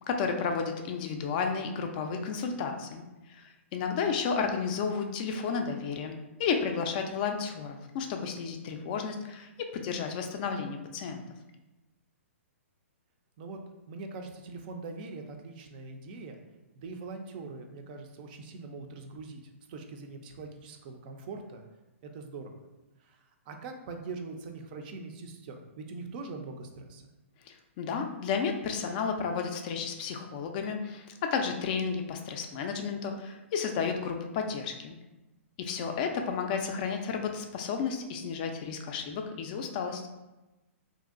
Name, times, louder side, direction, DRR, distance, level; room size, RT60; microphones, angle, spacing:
voice 1, 0.1-6.1 6.4-11.2 27.5-35.0 35.6-40.1, left 5 dB, 40° left, 4 dB, 0.3 m, -32 dB
voice 2, 13.9-16.4 16.7-19.4 19.7-21.6 22.1-22.6 23.0-27.1, right 3 dB, 40° right, 4 dB, 0.4 m, -42 dB
3.0 x 2.6 x 2.4 m, 1.0 s
hypercardioid pair, 140°, 7 cm